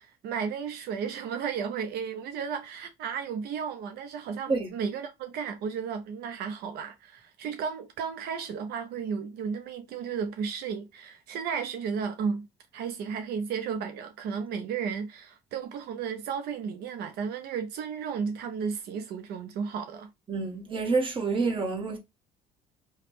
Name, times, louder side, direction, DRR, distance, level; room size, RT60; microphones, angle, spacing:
voice 1, 0.0-12.5 12.7-20.1, right 6 dB, 75° right, 0.5 m, -34 dB
voice 2, 20.3-22.0, right 4 dB, 30° right, 1.0 m, -28 dB
2.9 x 2.1 x 3.2 m
cardioid pair, 110°, 17 cm